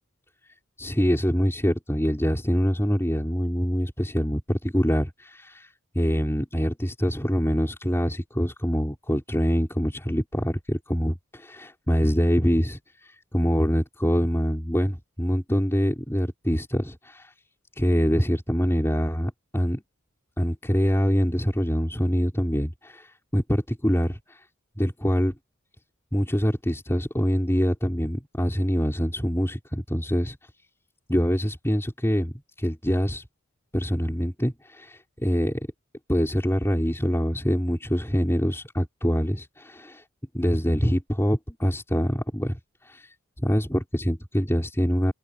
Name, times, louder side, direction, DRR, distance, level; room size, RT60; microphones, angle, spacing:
voice 1, 0.8-5.7 6.0-17.3 17.8-19.8 20.4-24.4 24.8-25.3 26.1-30.4 31.1-33.2 33.7-35.6 36.1-40.0 40.3-42.6 42.8-43.1 43.4-45.1, equal, 10° left, 5.5 m, -25 dB
head